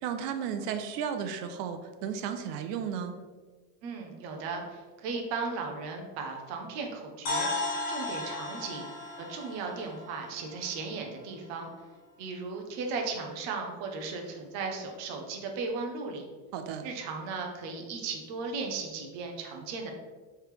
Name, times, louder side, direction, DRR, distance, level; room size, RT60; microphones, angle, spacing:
voice 1, 0.0-3.1 16.5-16.8, right 7 dB, 75° right, 7 dB, 0.6 m, -34 dB
voice 2, 3.8-7.5 7.9-8.9 9.2-11.7 12.2-16.2 16.8-19.9, right 4 dB, 35° right, 2 dB, 0.6 m, -36 dB
sound 1, 7.3-11.2, left 2 dB, 20° left, 0.3 m, -35 dB
4.8 x 3.3 x 3.1 m, 1.4 s
cardioid pair, 165°, 48 cm